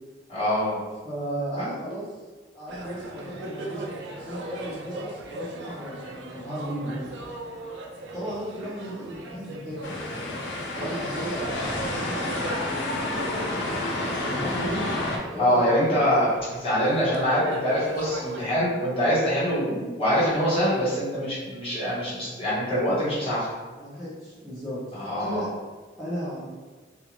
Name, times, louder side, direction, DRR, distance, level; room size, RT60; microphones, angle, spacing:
voice 1, 0.3-0.8 1.6-1.7 15.4-23.5 24.9-25.4, equal, 30° left, -9 dB, 1.1 m, -24 dB
voice 2, 1.0-2.0 2.5-7.1 8.1-9.9 10.8-12.4 14.2-14.9 15.3-16.0 23.8-24.8 25.0-25.5 26.0-26.5, equal, ahead, -14 dB, 0.6 m, -35 dB
sound 1, 2.7-18.4, right 2 dB, 75° right, 0.4 m, -38 dB
sound 2, 9.8-15.2, left 2 dB, 75° left, 0.5 m, -30 dB
2.4 x 2.4 x 2.9 m, 1.3 s
head